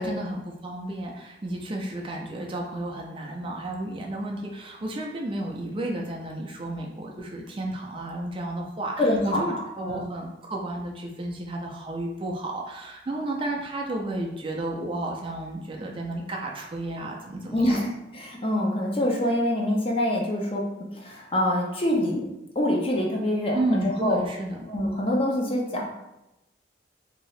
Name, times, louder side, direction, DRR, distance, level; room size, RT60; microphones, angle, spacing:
voice 1, 0.0-17.8 23.5-24.6, right 1 dB, 30° right, 0 dB, 0.4 m, -32 dB
voice 2, 9.0-10.1 17.5-20.6 20.9-22.3 22.5-24.2 24.7-25.9, left 1 dB, 30° left, -1 dB, 0.6 m, -25 dB
2.7 x 2.7 x 3.1 m, 0.92 s
head